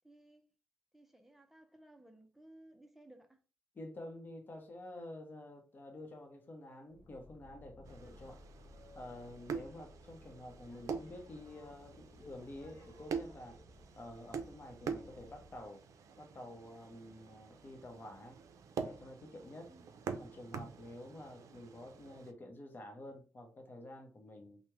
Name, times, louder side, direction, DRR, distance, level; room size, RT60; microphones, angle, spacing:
voice 1, 0.0-0.5 0.9-3.4 19.7-20.0, right 1 dB, 5° right, 0.5 m, -59 dB
voice 2, 3.7-8.4 8.9-13.6 14.0-15.8 16.2-18.4 18.8-19.7 20.2-24.6, left 1 dB, 35° left, 0.7 m, -49 dB
Boat Water vehicle, 6.9-15.7, left 1 dB, 70° left, 0.8 m, -59 dB
sound 1, 7.8-22.3, right 6 dB, 90° right, 0.4 m, -46 dB
3.0 x 2.1 x 3.4 m
wide cardioid pair, 120°, 5 cm